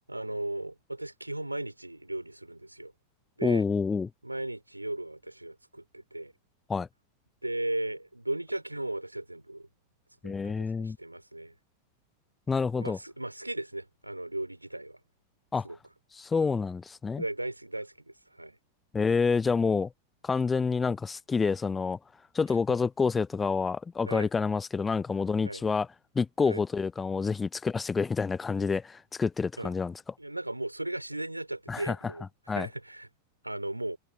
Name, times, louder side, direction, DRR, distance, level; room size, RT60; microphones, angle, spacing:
voice 1, 0.1-2.9 3.4-3.7 4.2-6.3 7.4-9.7 10.2-11.5 12.8-15.0 15.6-15.8 17.2-18.6 24.0-24.3 25.4-25.6 26.4-26.6 29.6-29.7 30.2-33.1 33.4-34.0, right 1 dB, 85° right, 4.6 m, -36 dB
voice 2, 3.4-4.1 6.7-6.9 10.2-11.0 12.5-13.0 15.5-15.6 16.1-17.2 18.9-19.9 20.2-22.0 22.3-25.9 26.2-29.9 31.7-32.0 32.5-32.7, left 5 dB, 15° left, 0.5 m, -28 dB
figure-of-eight pair, 90°, 0 cm